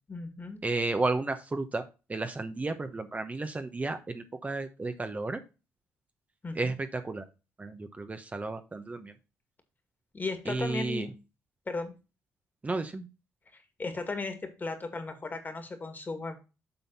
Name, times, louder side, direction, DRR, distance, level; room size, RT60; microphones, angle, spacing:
voice 1, 0.1-0.6 6.4-6.7 10.1-11.1 11.7-11.9 13.8-16.4, left 3 dB, 35° left, 7 dB, 2.2 m, -36 dB
voice 2, 0.6-1.8 2.1-5.4 6.5-7.2 7.6-9.1 10.5-11.1 12.6-13.1, right 3 dB, 25° right, 8 dB, 1.0 m, -32 dB
7.7 x 4.0 x 5.7 m, 0.30 s
supercardioid pair, 60°, 6 cm